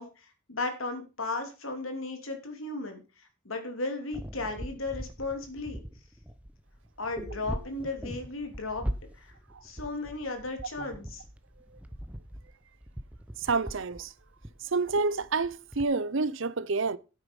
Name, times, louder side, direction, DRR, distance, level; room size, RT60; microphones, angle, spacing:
voice 1, 0.0-3.0 3.4-5.8 7.0-9.3 9.6-11.2, left 3 dB, 70° left, 3.0 m, -35 dB
sound 1, 4.1-15.8, equal, 5° right, 0.9 m, -41 dB
sound 2, 7.2-8.9, left 5 dB, 25° left, 5.3 m, -55 dB
voice 2, 13.4-14.1 14.7-17.0, right 4 dB, 60° right, 0.7 m, -28 dB
9.4 x 8.6 x 5.3 m
head